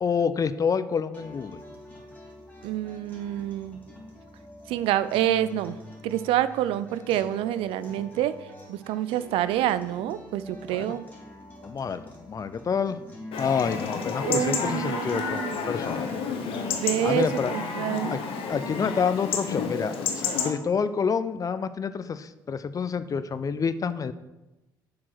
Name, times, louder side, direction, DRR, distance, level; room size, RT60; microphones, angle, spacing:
voice 1, 0.0-1.6 10.7-10.9 11.6-13.0 13.4-15.4 15.7-16.0 17.0-17.5 18.1-18.2 18.5-24.1, left 6 dB, 30° left, 13 dB, 0.5 m, -28 dB
sound 1, 1.1-17.1, left 1 dB, 10° left, 3.2 m, -45 dB
voice 2, 2.6-3.8 4.7-5.8 6.0-8.3 8.7-11.1 14.2-15.5 16.8-18.2, right 12 dB, 60° right, 14 dB, 0.4 m, -27 dB
Chatter / Livestock farm animals working animals / Chirp tweet, 13.3-20.5, left 5 dB, 55° left, 1.0 m, -30 dB
7.2 x 4.8 x 6.1 m, 1.0 s
figure-of-eight pair, 50°, 11 cm